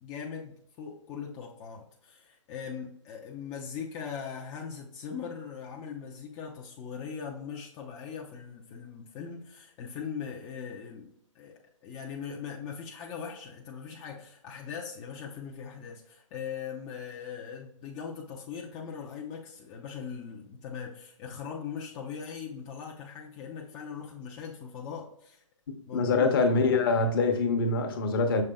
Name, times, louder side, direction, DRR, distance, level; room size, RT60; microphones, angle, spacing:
voice 1, 0.0-25.4 25.9-26.3, left 7 dB, 20° left, 0.4 m, -40 dB
voice 2, 25.9-28.4, left 3 dB, 45° left, 0.8 m, -24 dB
6.5 x 3.3 x 2.3 m
figure-of-eight pair, 130°, 17 cm